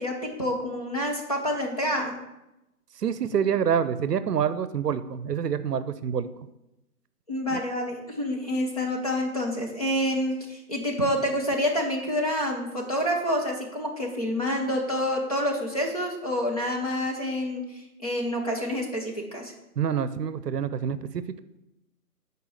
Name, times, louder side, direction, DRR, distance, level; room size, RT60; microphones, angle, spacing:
voice 1, 0.0-2.2 7.3-19.5, equal, 25° left, -1 dB, 1.0 m, -28 dB
voice 2, 3.0-6.3 7.5-7.6 19.8-21.4, right 8 dB, 80° right, 13 dB, 0.7 m, -27 dB
8.1 x 4.6 x 6.4 m, 0.92 s
hypercardioid pair, 175°, 47 cm